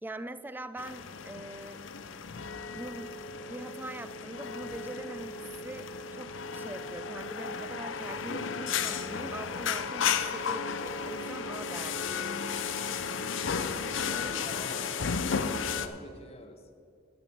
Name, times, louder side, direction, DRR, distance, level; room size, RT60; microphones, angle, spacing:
voice 1, 0.0-1.8 2.7-12.2 14.4-14.5, right 1 dB, 10° right, 12 dB, 0.4 m, -43 dB
sound 1, 0.8-15.9, left 6 dB, 80° left, 0.6 m, -34 dB
voice 2, 14.0-14.8 15.7-16.7, left 2 dB, 30° left, 6 dB, 1.0 m, -46 dB
9.5 x 8.8 x 5.9 m, 2.4 s
head